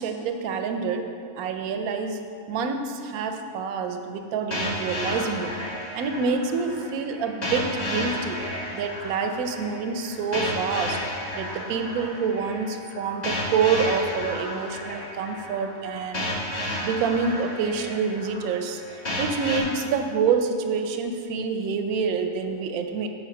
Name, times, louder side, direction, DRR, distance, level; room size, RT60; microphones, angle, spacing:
voice 1, 0.0-5.5 5.9-8.4 8.7-11.0 11.3-16.3 16.8-18.8 19.2-23.1, right 5 dB, 85° right, 6 dB, 1.1 m, -27 dB
sound 1, 4.5-19.6, left 1 dB, 30° left, 1.3 m, -32 dB
7.7 x 4.8 x 5.8 m, 2.4 s
omnidirectional pair, 1.5 m